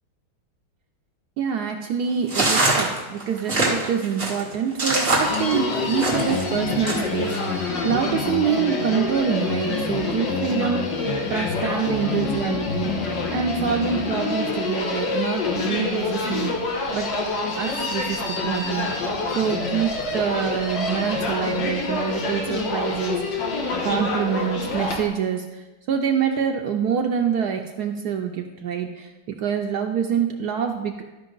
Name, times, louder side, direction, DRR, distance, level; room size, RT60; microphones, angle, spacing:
voice 1, 1.4-16.5 16.9-17.1 17.5-19.1 19.4-23.4 23.8-29.1 29.4-31.0, right 7 dB, 80° right, 3 dB, 0.8 m, -26 dB
sound 1, 2.3-6.4 6.9-7.4, right 2 dB, 30° right, 1.6 m, -23 dB
Human voice, 5.2-25.1, left 3 dB, 60° left, 1.8 m, -26 dB
12.5 x 5.2 x 3.8 m, 1.1 s
omnidirectional pair, 2.3 m